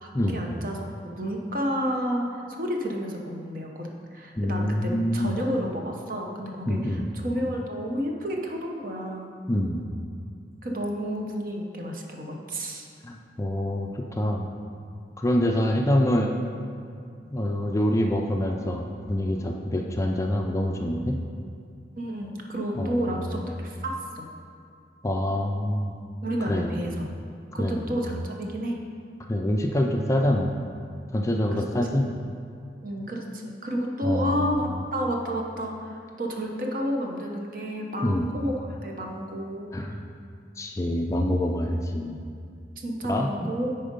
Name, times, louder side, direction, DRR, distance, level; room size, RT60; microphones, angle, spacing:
voice 1, 0.0-9.3 10.6-12.9 22.0-24.3 26.2-27.2 27.5-28.8 31.5-31.6 32.8-39.7 42.8-43.7, equal, 50° right, 1 dB, 0.8 m, -31 dB
voice 2, 4.4-5.4 6.7-7.1 9.5-9.8 13.0-14.4 15.2-16.3 17.3-21.2 22.7-23.4 25.0-25.9 26.5-26.7 27.6-28.0 29.3-30.5 31.1-32.1 34.0-34.4 38.0-38.3 39.7-40.0 40.6-42.2 43.1-43.3, left 1 dB, 15° left, 2 dB, 0.4 m, -26 dB
9.0 x 4.3 x 5.2 m, 2.4 s
head